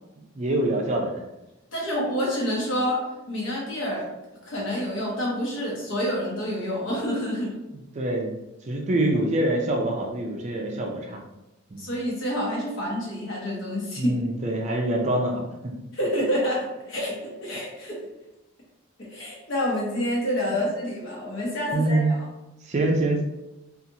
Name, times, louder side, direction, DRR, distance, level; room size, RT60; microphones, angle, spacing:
voice 1, 0.4-1.1 8.0-8.3 8.7-11.2 11.7-11.9 14.0-15.4 20.5-20.6 21.7-22.2 22.7-23.2, right 1 dB, 35° right, 0 dB, 0.4 m, -25 dB
voice 2, 1.7-3.0 3.3-4.1 4.4-7.5 11.8-14.1 15.9-18.0 19.0-22.3, equal, 60° left, -3 dB, 1.0 m, -28 dB
2.8 x 2.4 x 2.6 m, 0.95 s
head